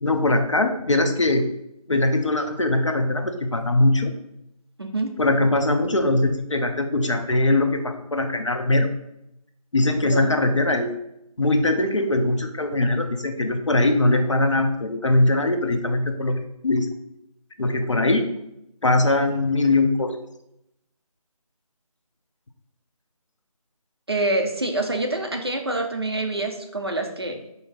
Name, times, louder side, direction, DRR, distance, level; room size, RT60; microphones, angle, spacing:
voice 1, 0.0-1.5 1.9-4.1 5.2-8.9 9.7-10.9 11.4-16.4 16.6-16.9 17.6-18.3 18.8-20.1, left 2 dB, 50° left, 5 dB, 0.5 m, -21 dB
voice 2, 4.8-5.2 10.0-10.3 24.1-27.4, right 2 dB, 40° right, 4 dB, 0.4 m, -26 dB
4.4 x 2.7 x 3.9 m, 0.82 s
figure-of-eight pair, 165°, 19 cm